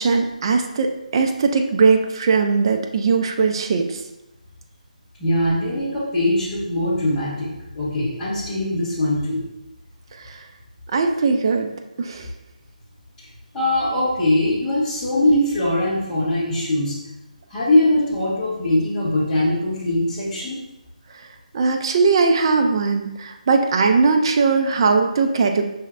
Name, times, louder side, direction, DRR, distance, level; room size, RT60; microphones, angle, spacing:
voice 1, 0.0-4.0 10.2-10.4 10.9-11.7 12.0-12.3 21.1-21.3 21.5-25.6, right 4 dB, 35° right, 4 dB, 0.4 m, -19 dB
voice 2, 5.2-9.4 13.5-17.0 17.5-20.6, left 1 dB, 10° left, -12 dB, 1.5 m, -21 dB
5.5 x 3.1 x 2.5 m, 0.93 s
figure-of-eight pair, 160°, 4 cm